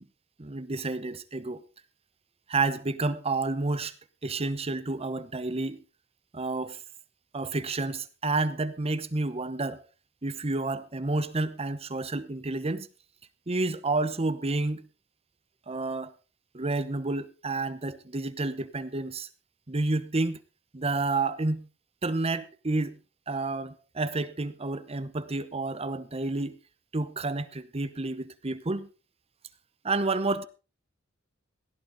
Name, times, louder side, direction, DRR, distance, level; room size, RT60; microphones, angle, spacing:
voice 1, 0.4-1.6 2.5-3.9 4.2-5.8 6.3-6.8 7.3-9.8 10.2-12.9 13.5-14.9 15.7-16.1 16.5-19.3 19.7-20.4 20.7-21.7 22.0-23.0 23.3-26.6 26.9-28.9 29.8-30.4, right 3 dB, 30° right, 0.9 m, -30 dB
17.0 x 11.5 x 3.9 m
head